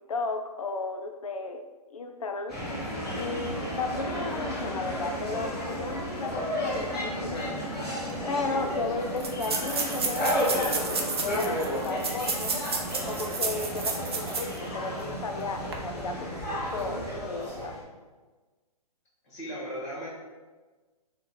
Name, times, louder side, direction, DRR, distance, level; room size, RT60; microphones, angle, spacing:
voice 1, 0.1-1.6 1.9-2.7 3.1-7.6 8.3-12.6 13.1-17.7, left 3 dB, 60° left, 5 dB, 0.5 m, -34 dB
sound 1, 2.5-17.8, equal, ahead, 0.8 m, -32 dB
sound 2, 8.1-8.2 8.4-8.5 9.2-14.6 15.0-15.1 15.6-15.7, right 4 dB, 40° right, 0.5 m, -32 dB
voice 2, 19.2-20.1, equal, 25° left, -7 dB, 1.5 m, -36 dB
4.1 x 2.4 x 4.1 m, 1.3 s
hypercardioid pair, 175°, 20 cm